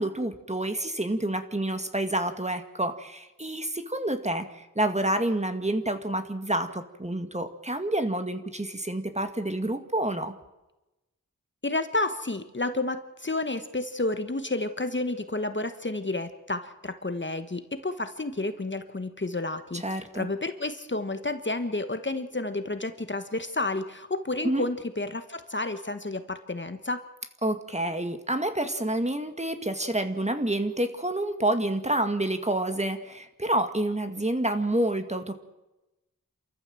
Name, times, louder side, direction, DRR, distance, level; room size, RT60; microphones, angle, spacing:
voice 1, 0.0-10.3 19.8-20.3 24.4-24.7 27.4-35.3, right 1 dB, 20° right, 7 dB, 2.0 m, -28 dB
voice 2, 11.6-27.0, left 2 dB, 35° left, 9 dB, 1.4 m, -31 dB
28.0 x 14.0 x 7.8 m, 1.0 s
wide cardioid pair, 50°, 31 cm